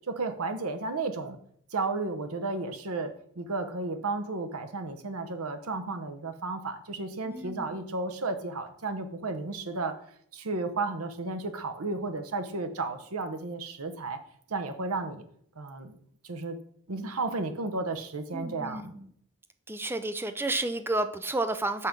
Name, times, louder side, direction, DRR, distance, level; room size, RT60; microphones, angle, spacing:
voice 1, 0.1-1.4 1.7-10.0 10.3-14.2 14.5-15.2 15.6-16.0 16.2-16.6 16.9-18.9, right 3 dB, 85° right, 8 dB, 0.9 m, -33 dB
voice 2, 7.2-7.7 18.3-19.1 19.7-21.9, right 2 dB, 10° right, 10 dB, 0.4 m, -31 dB
6.1 x 5.6 x 5.2 m, 0.65 s
head